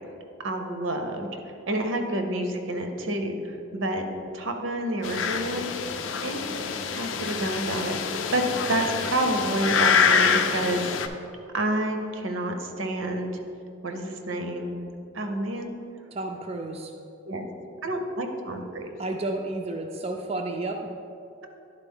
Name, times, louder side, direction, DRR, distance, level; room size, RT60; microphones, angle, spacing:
voice 1, 0.4-1.3 1.7-4.1 4.3-5.7 6.2-6.5 7.0-11.1 11.5-13.3 13.8-14.7 15.1-15.7 17.3-17.5 17.8-18.9, right 1 dB, 80° right, 5 dB, 0.7 m, -29 dB
sound 1, 5.0-11.1, left 6 dB, 75° left, 0.4 m, -26 dB
voice 2, 16.1-16.9 19.0-20.9, right 2 dB, 30° right, 3 dB, 0.3 m, -31 dB
10.5 x 4.1 x 3.6 m, 2.6 s
head